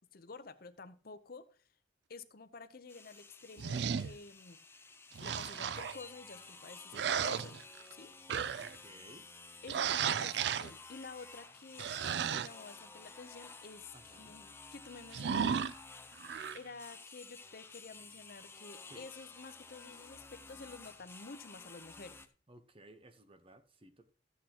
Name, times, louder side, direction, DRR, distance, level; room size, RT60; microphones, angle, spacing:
voice 1, 0.1-1.6 2.1-4.6 5.2-7.6 7.9-8.1 9.6-11.9 12.1-15.6 16.5-22.2, left 4 dB, 55° left, 0.7 m, -51 dB
sound 1, 2.9-22.3, left 4 dB, 15° left, 0.5 m, -53 dB
sound 2, 3.6-4.2 5.1-6.0 6.9-7.9 8.3-8.8 9.7-10.7 11.8-12.5 15.1-15.7 16.2-16.6, right 7 dB, 60° right, 0.4 m, -34 dB
voice 2, 8.6-9.3 9.9-10.0 13.9-14.4 18.9-19.1 22.5-24.1, right 1 dB, 30° right, 0.8 m, -57 dB
13.5 x 8.3 x 2.9 m
head